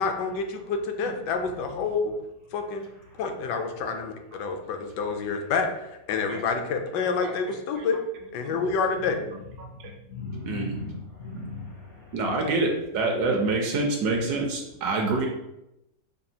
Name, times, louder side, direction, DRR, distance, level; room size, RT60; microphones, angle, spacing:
voice 1, 0.0-2.1 2.5-2.9 3.2-8.0 8.3-9.2, left 5 dB, 75° left, 5 dB, 1.2 m, -28 dB
voice 2, 3.1-3.4 8.5-12.5 13.3-13.4, left 3 dB, 60° left, -4 dB, 0.7 m, -40 dB
voice 3, 10.5-10.8 12.1-15.3, right 3 dB, 70° right, 1 dB, 1.0 m, -26 dB
5.2 x 2.3 x 2.7 m, 0.89 s
omnidirectional pair, 2.0 m